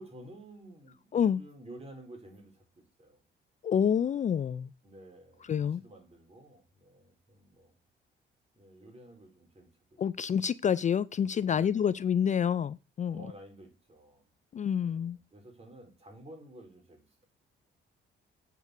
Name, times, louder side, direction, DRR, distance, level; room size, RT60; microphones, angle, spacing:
voice 1, 0.0-3.2 4.8-7.7 8.5-10.2 11.4-12.0 13.1-14.3 14.7-17.3, right 1 dB, 30° right, 4.4 m, -52 dB
voice 2, 3.6-4.7 5.5-5.8 10.0-13.2 14.5-15.2, left 8 dB, 40° left, 0.4 m, -28 dB
8.4 x 5.4 x 6.0 m
cardioid pair, 90°, 20 cm